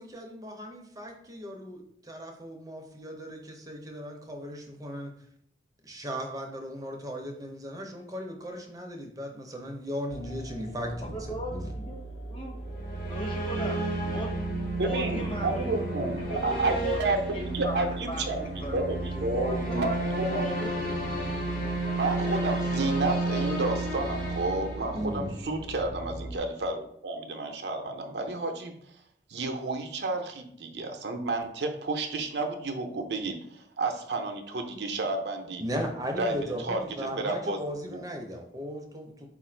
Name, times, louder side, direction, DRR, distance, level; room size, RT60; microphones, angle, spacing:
voice 1, 0.0-5.1 5.8-11.1 11.5-11.7 24.9-25.3 35.6-39.3, equal, 20° right, 2 dB, 0.6 m, -37 dB
sound 1, 10.1-26.4, right 1 dB, 75° left, 0.7 m, -40 dB
voice 2, 11.1-12.0 12.3-12.5 13.1-14.3 14.8-15.8 16.2-17.0 17.3-19.0 19.4-21.3, equal, 30° left, 0 dB, 0.9 m, -38 dB
sound 2, 12.6-25.4, right 2 dB, 55° left, 1.2 m, -32 dB
voice 3, 14.8-17.2 17.5-20.5 21.9-28.7 29.3-35.6 36.2-37.6 37.9-38.0, right 2 dB, 65° right, 4 dB, 0.6 m, -31 dB
4.4 x 2.4 x 4.4 m, 0.70 s
head